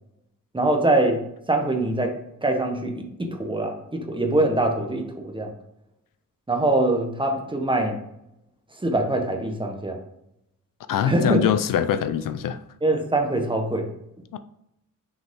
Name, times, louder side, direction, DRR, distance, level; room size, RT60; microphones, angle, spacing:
voice 1, 0.5-1.2 1.5-2.1 2.4-5.5 6.5-8.0 8.8-10.0 11.0-11.4 12.8-13.9, right 2 dB, 15° right, 3 dB, 1.1 m, -23 dB
voice 2, 10.9-12.6 14.3-14.4, left 9 dB, 75° left, 12 dB, 0.5 m, -23 dB
6.3 x 5.1 x 3.6 m, 0.81 s
wide cardioid pair, 125°, 33 cm